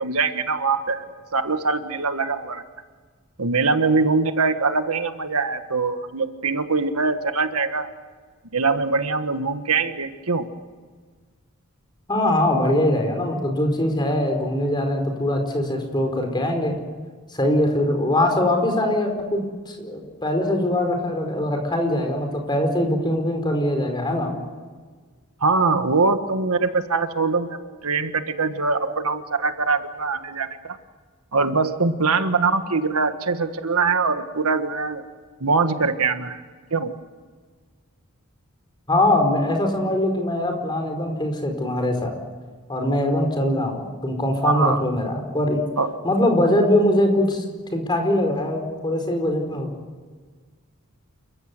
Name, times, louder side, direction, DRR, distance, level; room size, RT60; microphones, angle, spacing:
voice 1, 0.0-2.6 3.4-7.9 8.5-10.4 25.4-30.8 31.3-35.0 35.4-36.4 36.7-36.9 44.4-44.8 45.8-46.0, right 4 dB, 85° right, 9 dB, 1.6 m, -23 dB
voice 2, 12.1-16.8 17.3-19.4 19.7-24.3 38.9-42.1 42.7-45.6 46.0-47.4 47.7-49.7, left 1 dB, 20° left, 4 dB, 4.8 m, -22 dB
29.0 x 15.5 x 9.6 m, 1.5 s
head